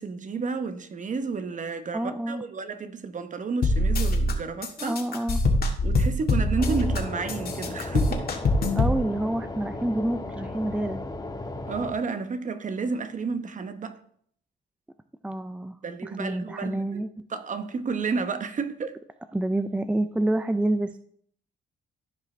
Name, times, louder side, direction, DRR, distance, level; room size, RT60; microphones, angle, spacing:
voice 1, 0.0-5.0 5.8-8.3 11.7-14.0 15.8-19.0, right 4 dB, 40° right, 1.0 m, -31 dB
voice 2, 1.9-2.4 4.8-5.4 8.7-11.0 15.2-15.8 16.0-17.1 19.3-20.9, right 1 dB, 5° right, 0.4 m, -28 dB
sound 1, 3.6-4.3 4.6-7.0 7.3-9.0, left 2 dB, 50° left, 1.7 m, -23 dB
sound 2, 6.6-11.9, left 2 dB, 20° left, 1.3 m, -36 dB
14.5 x 5.0 x 3.3 m
cardioid pair, 90°, 20 cm